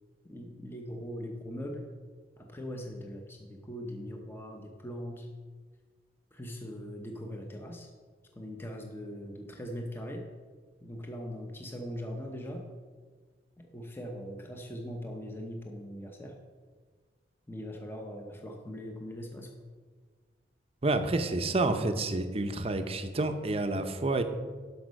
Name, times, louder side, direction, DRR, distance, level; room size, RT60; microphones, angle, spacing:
voice 1, 0.2-1.8 2.4-5.3 6.3-7.9 8.3-10.3 10.8-12.7 13.6-16.4 17.5-19.5, equal, 15° left, 2 dB, 0.8 m, -40 dB
voice 2, 20.8-24.2, right 2 dB, 35° right, 8 dB, 0.6 m, -29 dB
12.5 x 5.4 x 5.2 m, 1.5 s
head